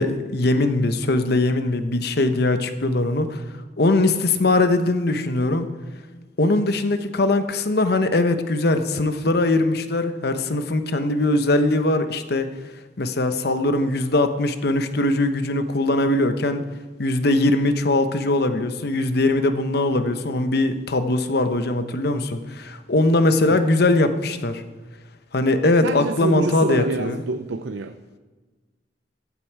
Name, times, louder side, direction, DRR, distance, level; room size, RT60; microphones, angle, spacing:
voice 1, 0.0-3.4 3.8-5.7 6.4-12.5 13.0-16.6 17.0-24.6 25.3-27.2, left 2 dB, 60° left, 9 dB, 0.9 m, -21 dB
voice 2, 25.8-28.0, right 3 dB, 85° right, 9 dB, 0.5 m, -27 dB
14.5 x 9.5 x 4.6 m, 1.3 s
head